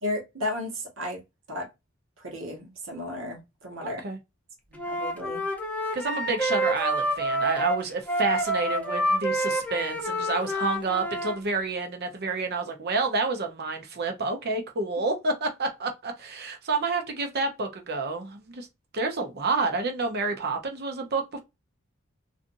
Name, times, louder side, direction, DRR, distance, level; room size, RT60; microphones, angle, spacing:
voice 1, 0.0-1.2 1.5-1.7 2.2-4.1 4.7-5.4, left 1 dB, 70° right, 1.2 m, -34 dB
voice 2, 3.8-4.2 5.9-18.7 18.9-21.4, right 3 dB, 50° right, 0.8 m, -29 dB
Wind instrument woodwind instrument, 4.7-11.4, equal, 5° left, 0.6 m, -28 dB
2.6 x 2.5 x 2.5 m
head